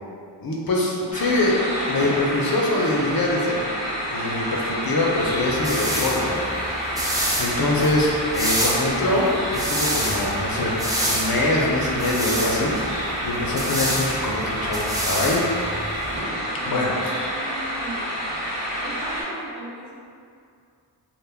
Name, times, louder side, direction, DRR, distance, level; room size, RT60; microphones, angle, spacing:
voice 1, 0.4-1.6 1.9-3.7 4.1-6.4 6.7-10.8 11.1-12.8 13.0-15.4 16.7-17.3, left 2 dB, 55° left, -3 dB, 0.5 m, -24 dB
sound 1, 1.1-19.2, equal, 40° right, 1.1 m, -29 dB
Fireworks, 2.0-4.0 4.8-4.9 5.1-5.3 5.6-5.7 9.0-10.8 12.5-12.6 15.7-15.8 16.1-18.4, equal, 85° right, 0.9 m, -39 dB
sound 2, 5.2-16.2, right 1 dB, 10° right, 0.4 m, -29 dB
voice 2, 16.4-18.1 18.8-20.0, right 1 dB, 60° right, -5 dB, 0.7 m, -38 dB
2.1 x 2.1 x 3.3 m, 2.4 s
wide cardioid pair, 50°, 43 cm